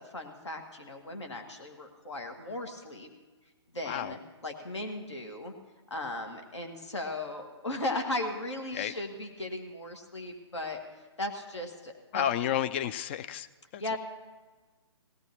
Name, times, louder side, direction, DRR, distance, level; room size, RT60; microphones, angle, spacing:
voice 1, 0.0-3.1 3.7-5.5 5.9-10.8 11.2-12.3 13.8-14.0, left 2 dB, 75° left, 3 dB, 1.9 m, -37 dB
voice 2, 3.8-4.2 8.7-9.0 12.1-13.5 13.7-14.0, left 10 dB, 25° left, 13 dB, 0.3 m, -31 dB
18.5 x 17.0 x 3.0 m, 1.3 s
figure-of-eight pair, 130°, 15 cm